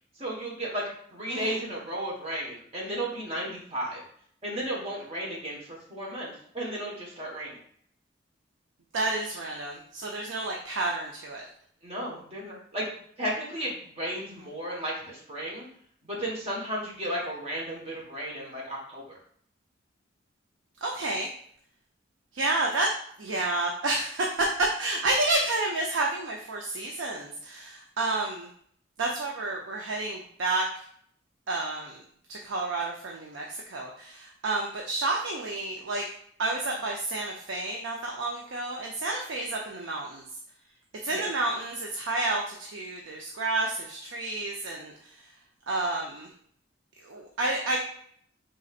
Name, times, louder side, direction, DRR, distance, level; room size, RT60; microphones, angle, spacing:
voice 1, 0.2-0.8 1.1-4.0 4.4-7.6 11.8-12.9 13.2-15.7 16.0-19.2 41.1-41.3, right 1 dB, 30° right, -4 dB, 1.3 m, -34 dB
voice 2, 8.9-11.5 20.8-21.3 22.3-22.9 23.2-28.5 29.0-30.7 31.5-32.0 32.3-36.0 36.4-40.2 41.0-45.3 45.7-46.3 47.0-47.8, right 2 dB, 85° right, 0 dB, 0.6 m, -30 dB
5.2 x 3.8 x 2.4 m, 0.64 s
head